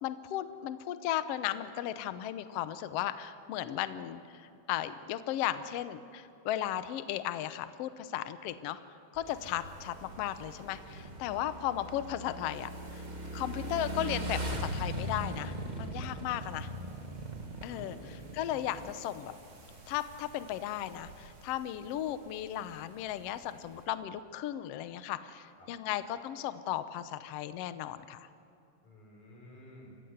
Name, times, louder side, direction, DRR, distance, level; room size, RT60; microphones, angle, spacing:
voice 1, 0.0-8.8 9.1-13.0 13.3-16.7 17.6-19.3 19.9-28.3, left 12 dB, 85° left, 12 dB, 1.4 m, -36 dB
Motorcycle / Engine, 9.1-18.9, right 1 dB, 45° right, 0.5 m, -40 dB
sound 1, 9.2-23.9, right 2 dB, 80° right, 5.7 m, -56 dB
voice 2, 17.7-18.4 25.6-25.7 28.8-29.9, left 1 dB, 60° left, 0 dB, 6.1 m, -53 dB
28.5 x 15.5 x 8.0 m, 2.5 s
omnidirectional pair, 3.8 m